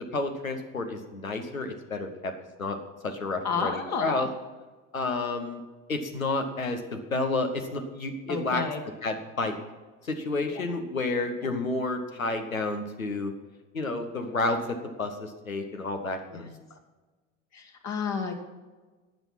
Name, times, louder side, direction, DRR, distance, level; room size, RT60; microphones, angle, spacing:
voice 1, 0.0-2.3 2.6-2.8 3.0-4.3 4.9-5.6 5.9-8.6 9.0-9.6 10.0-13.3 13.7-16.5, left 2 dB, 85° left, 6 dB, 1.2 m, -30 dB
voice 2, 3.4-4.3 8.3-8.8 10.5-10.6 11.4-11.5 16.3-16.5 17.5-18.3, left 5 dB, 40° left, 2 dB, 1.7 m, -31 dB
17.0 x 6.3 x 5.7 m, 1.3 s
figure-of-eight pair, 60°, 40 cm